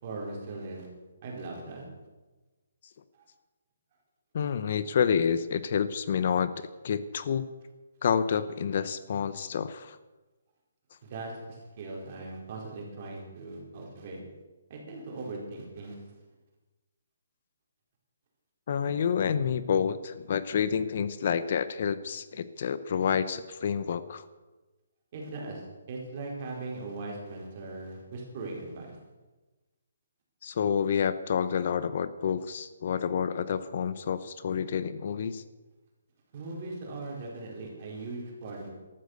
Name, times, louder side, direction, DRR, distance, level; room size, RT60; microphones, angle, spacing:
voice 1, 0.0-0.9 1.2-1.8 3.2-3.3 11.0-14.2 14.7-16.0 25.1-25.6 25.9-29.0 36.3-38.7, right 3 dB, 35° right, -1 dB, 4.7 m, -39 dB
voice 2, 4.3-7.5 8.0-10.0 18.7-24.3 30.4-35.4, left 7 dB, 45° left, 14 dB, 0.8 m, -29 dB
14.5 x 13.0 x 6.7 m, 1.2 s
hypercardioid pair, 170°, 0 cm